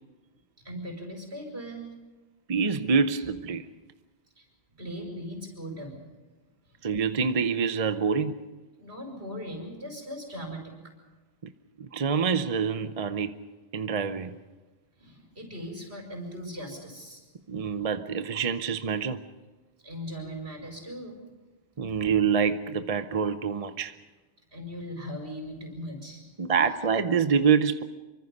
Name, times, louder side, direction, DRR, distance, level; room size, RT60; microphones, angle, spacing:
voice 1, 0.6-1.9 4.4-4.5 4.8-6.0 8.8-10.9 15.0-17.2 19.8-21.2 24.5-26.2, equal, 75° right, 5.6 m, -39 dB
voice 2, 2.5-3.7 6.8-8.4 11.4-11.5 11.8-13.4 13.7-14.4 17.5-19.2 21.8-24.0 26.4-27.8, right 6 dB, 40° right, 0.8 m, -26 dB
25.5 x 24.5 x 5.4 m
omnidirectional pair, 1.1 m